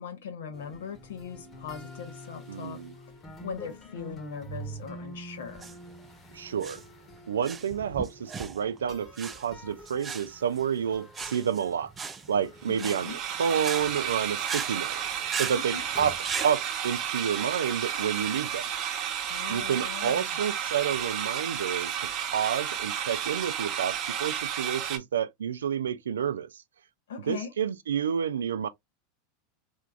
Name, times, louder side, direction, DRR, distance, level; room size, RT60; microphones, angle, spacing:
voice 1, 0.0-2.8 3.4-5.8 12.7-13.2 15.7-15.8 19.3-20.4 27.1-27.5, left 7 dB, 80° left, 1.0 m, -40 dB
sound 1, 0.5-16.2, right 1 dB, 30° left, 1.3 m, -47 dB
voice 2, 2.5-2.9 6.3-6.8 7.3-11.9 12.3-15.0 15.3-18.7 19.5-26.6 27.2-28.7, right 8 dB, 90° right, 0.3 m, -29 dB
sound 2, 5.5-16.5, right 5 dB, 25° right, 0.5 m, -39 dB
sound 3, 12.6-25.0, right 9 dB, 50° right, 0.9 m, -32 dB
3.4 x 2.9 x 2.3 m
hypercardioid pair, 100°, 0 cm